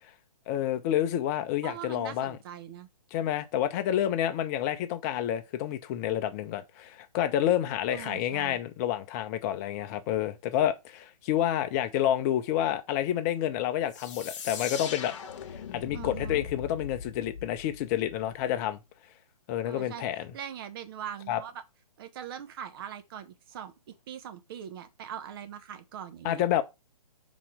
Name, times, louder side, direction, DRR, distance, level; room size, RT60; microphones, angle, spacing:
voice 1, 0.5-2.4 3.1-15.1 15.5-18.8 19.5-20.3 21.3-21.4 26.2-26.6, left 11 dB, 25° left, 0.8 m, -29 dB
voice 2, 1.6-2.9 7.9-8.6 15.9-16.4 19.7-20.1 20.3-21.6 22.0-26.4, right 9 dB, 35° right, 1.2 m, -41 dB
sound 1, 13.9-18.5, left 6 dB, 50° left, 1.2 m, -40 dB
5.8 x 4.1 x 4.9 m
figure-of-eight pair, 135°, 20 cm